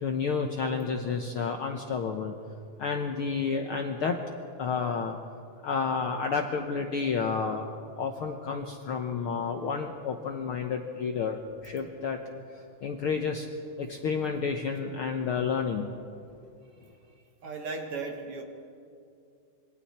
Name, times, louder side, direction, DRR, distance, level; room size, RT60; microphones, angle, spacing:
voice 1, 0.0-2.3 2.8-4.2 4.6-5.1 5.6-7.6 8.0-12.2 12.8-13.5 13.8-15.9, left 5 dB, 65° left, 3 dB, 1.4 m, -30 dB
voice 2, 17.4-18.4, right 4 dB, 50° right, 3 dB, 2.3 m, -36 dB
26.5 x 23.0 x 4.3 m, 2.5 s
omnidirectional pair, 3.6 m